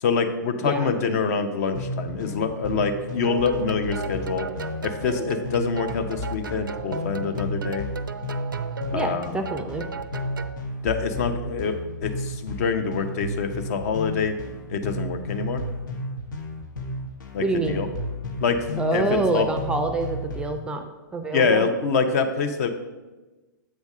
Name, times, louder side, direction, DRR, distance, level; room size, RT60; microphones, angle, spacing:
voice 1, 0.0-4.5 4.8-7.9 8.9-9.4 10.8-14.3 14.7-15.6 17.3-17.9 18.4-19.5 21.3-22.7, left 5 dB, 50° left, 8 dB, 0.7 m, -25 dB
voice 2, 0.6-0.9 8.9-9.9 17.4-17.9 18.8-21.7, right 2 dB, 10° right, 7 dB, 0.4 m, -26 dB
sound 1, 1.7-20.6, left 1 dB, 70° left, 1.1 m, -33 dB
sound 2, 3.2-10.6, right 5 dB, 85° right, 0.4 m, -36 dB
7.4 x 3.5 x 5.3 m, 1.2 s
figure-of-eight pair, 115°, 11 cm